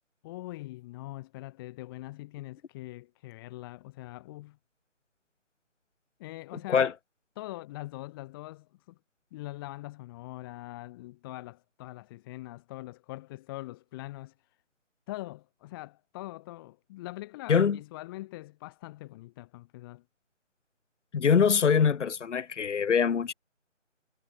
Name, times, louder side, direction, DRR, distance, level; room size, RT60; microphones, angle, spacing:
voice 1, 0.2-4.6 6.2-6.9 7.4-9.0 9.3-14.3 15.1-20.0, left 18 dB, 20° left, 4.9 m, -42 dB
voice 2, 17.5-17.8 21.1-23.3, left 6 dB, 65° left, 0.7 m, -23 dB
figure-of-eight pair, 155°, 38 cm